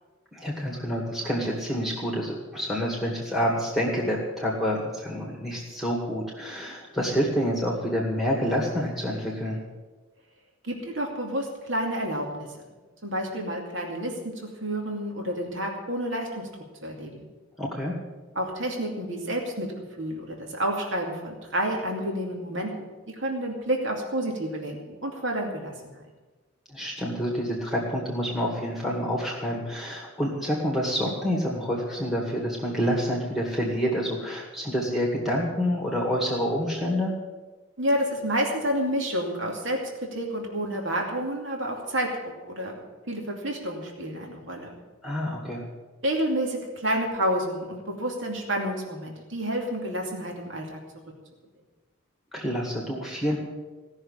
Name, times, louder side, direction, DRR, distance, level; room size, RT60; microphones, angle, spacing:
voice 1, 0.3-9.6 17.6-17.9 26.7-37.1 45.0-45.7 52.3-53.4, equal, ahead, -3 dB, 2.1 m, -28 dB
voice 2, 10.6-12.5 13.0-16.5 16.8-17.3 18.4-19.7 20.0-26.0 37.8-42.7 43.1-44.7 46.0-50.8, right 1 dB, 60° right, 0 dB, 2.6 m, -29 dB
17.5 x 6.6 x 9.8 m, 1.3 s
head